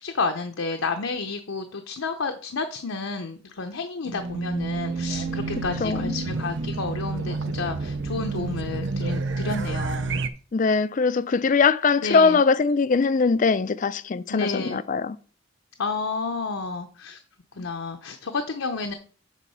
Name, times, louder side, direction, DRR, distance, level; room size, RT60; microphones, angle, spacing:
voice 1, 0.0-10.2 12.0-12.4 14.3-14.8 15.8-17.2 17.6-18.9, left 4 dB, 75° left, 0.7 m, -30 dB
Race car auto racing / Alarm, 4.1-10.3, right 3 dB, 60° right, 0.6 m, -29 dB
voice 2, 5.8-6.1 10.5-15.2, left 4 dB, 40° left, 0.4 m, -21 dB
8.3 x 4.0 x 5.5 m
head